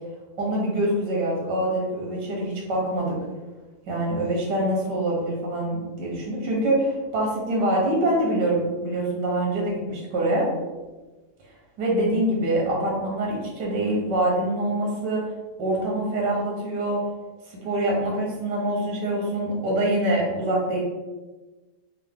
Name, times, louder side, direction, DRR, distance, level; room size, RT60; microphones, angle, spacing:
voice 1, 0.4-3.2 3.9-10.5 11.8-15.2 15.6-17.0 17.5-20.8, right 1 dB, 85° right, -3 dB, 1.6 m, -25 dB
4.6 x 2.2 x 3.5 m, 1.2 s
omnidirectional pair, 1.8 m